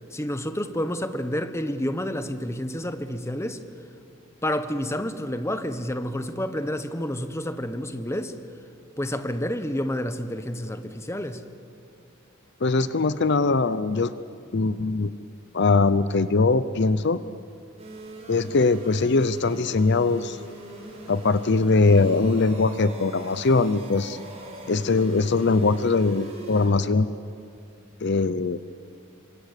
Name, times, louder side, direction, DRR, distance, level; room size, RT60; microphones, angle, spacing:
voice 1, 0.1-3.6 4.4-8.3 9.0-11.4, left 1 dB, 15° left, 1.2 m, -29 dB
voice 2, 12.6-14.1 14.5-15.1 15.5-17.2 18.3-20.4 21.1-24.2 24.7-27.1 28.0-28.6, left 3 dB, 55° left, 0.6 m, -21 dB
sound 1, 17.8-26.7, right 1 dB, 30° right, 7.0 m, -41 dB
27.5 x 24.5 x 8.2 m
head